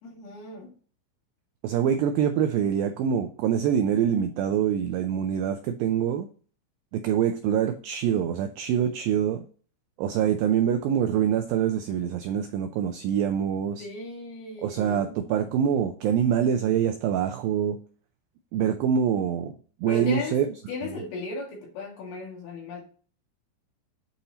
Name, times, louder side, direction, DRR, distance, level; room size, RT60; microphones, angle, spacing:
voice 1, 0.0-0.7 13.8-15.1 19.9-20.4 20.7-22.8, left 3 dB, 70° left, -1 dB, 3.9 m, -36 dB
voice 2, 1.6-6.3 6.9-9.4 10.0-13.9 14.6-17.8 18.5-19.5 19.8-20.5 20.8-21.0, right 8 dB, 85° right, 6 dB, 2.0 m, -25 dB
9.1 x 4.2 x 2.8 m, 0.42 s
omnidirectional pair, 4.7 m